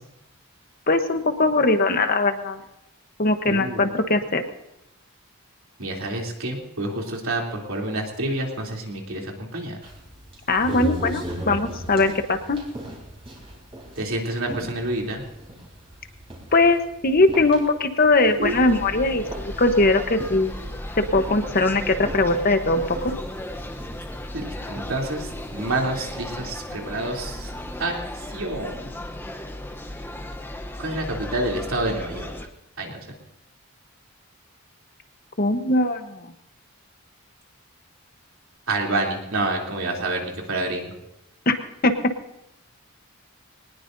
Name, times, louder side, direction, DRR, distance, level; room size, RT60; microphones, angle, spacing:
voice 1, 0.9-2.6 3.2-4.4 10.5-12.6 16.5-20.5 21.0-23.1 35.4-36.3 41.5-41.6 41.8-42.0, left 2 dB, 40° left, 7 dB, 1.0 m, -20 dB
voice 2, 3.5-3.9 5.8-9.8 14.0-15.2 18.4-18.5 24.3-27.5 27.8-27.9 28.3-28.9 30.8-32.3 32.8-33.1 38.7-40.9, right 2 dB, 70° right, 0 dB, 3.2 m, -28 dB
sound 1, 9.8-28.0, equal, 25° right, 4.2 m, -39 dB
sound 2, 18.4-32.5, left 1 dB, 10° left, 0.8 m, -35 dB
22.5 x 19.5 x 2.7 m, 0.85 s
head